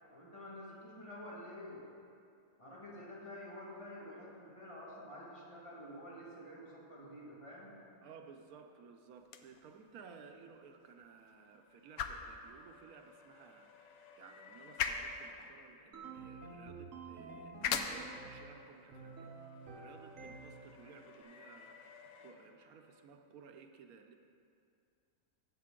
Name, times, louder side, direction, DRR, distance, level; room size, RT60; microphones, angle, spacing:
voice 1, 0.1-1.9 2.6-7.8, left 1 dB, 20° left, -6 dB, 1.9 m, -49 dB
voice 2, 8.0-19.3 19.7-24.1, right 6 dB, 80° right, 5 dB, 1.2 m, -57 dB
sound 1, 9.2-21.2, left 7 dB, 80° left, 1.1 m, -44 dB
sound 2, 10.7-16.4 17.7-23.1, left 5 dB, 60° left, 0.8 m, -60 dB
sound 3, 15.9-18.6 18.9-20.8, right 4 dB, 65° right, 1.4 m, -50 dB
15.0 x 6.7 x 3.7 m, 2.4 s
omnidirectional pair, 1.5 m